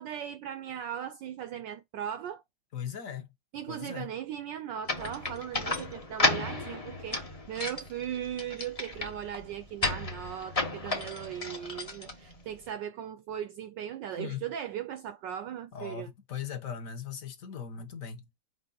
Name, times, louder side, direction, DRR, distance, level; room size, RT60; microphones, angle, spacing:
voice 1, 0.0-2.4 3.5-16.1, right 10 dB, 75° right, 1.0 m, -38 dB
voice 2, 2.7-3.3 3.7-4.1 14.2-14.4 15.7-18.3, left 8 dB, 50° left, 1.1 m, -39 dB
sound 1, 4.9-12.7, left 2 dB, 30° left, 0.7 m, -33 dB
5.5 x 4.8 x 3.8 m
omnidirectional pair, 2.3 m